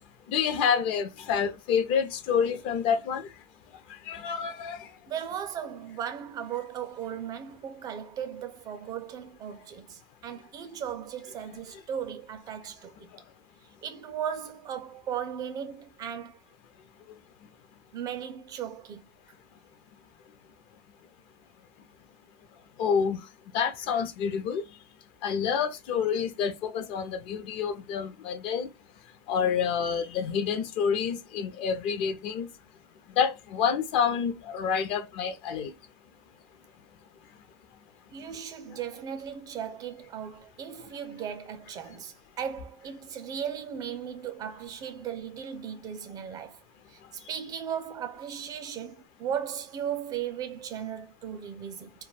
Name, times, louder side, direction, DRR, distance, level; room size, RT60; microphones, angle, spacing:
voice 1, 0.3-3.3 4.1-4.9 22.8-23.2 23.5-24.6 25.2-28.7 29.3-32.5 33.2-35.7, left 7 dB, 50° left, 0.5 m, -28 dB
voice 2, 5.1-13.1 13.8-16.4 17.9-19.0 38.1-46.6 46.9-51.9, right 8 dB, 30° right, 0.4 m, -37 dB
2.2 x 2.1 x 3.1 m
supercardioid pair, 125°, 13 cm